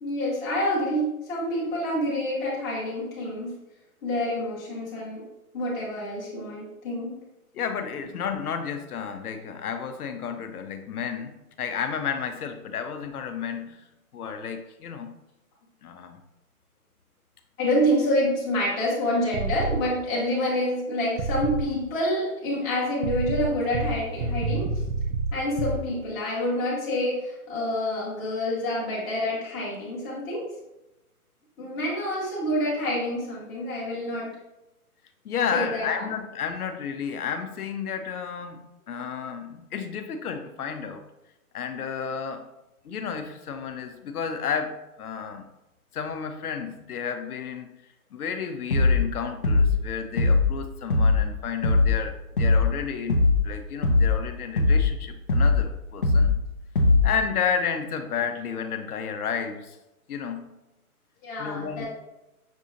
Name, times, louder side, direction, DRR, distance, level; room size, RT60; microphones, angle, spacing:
voice 1, 0.0-3.5 4.0-5.2 5.5-7.1 17.6-24.7 25.3-30.4 31.6-34.3 35.5-36.0 61.2-61.9, left 1 dB, 10° left, -8 dB, 0.9 m, -27 dB
voice 2, 7.5-13.9 14.1-15.2 15.8-16.2 35.2-41.0 41.5-42.5 42.8-45.5 45.9-47.7 48.1-56.4 57.0-59.8 60.1-60.6 61.4-61.9, left 7 dB, 80° left, 7 dB, 0.6 m, -32 dB
sound 1, 19.3-19.8 21.2-21.7 23.0-25.8, right 3 dB, 60° right, 0.5 m, -28 dB
sound 2, 48.7-49.1 49.4-49.8 50.2-50.5 50.9-51.3 51.6-52.0 52.4-52.7 53.1-53.5 53.8-54.2 54.6-54.9 55.3-55.7 56.0-56.4 56.8-57.2, left 3 dB, 40° left, 0.4 m, -20 dB
6.1 x 2.7 x 2.5 m, 0.93 s
hypercardioid pair, 155°, 44 cm